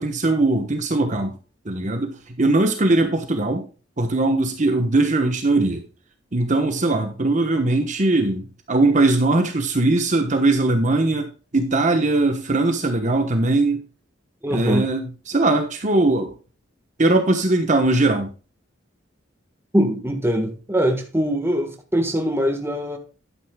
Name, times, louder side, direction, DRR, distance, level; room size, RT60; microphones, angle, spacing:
voice 1, 0.0-1.3 1.6-3.7 4.0-5.8 6.3-13.8 14.5-16.3 17.0-18.3, right 2 dB, 40° right, 1.1 m, -20 dB
voice 2, 14.4-14.9 19.7-23.0, equal, 10° right, 1.4 m, -22 dB
11.0 x 9.3 x 2.3 m
head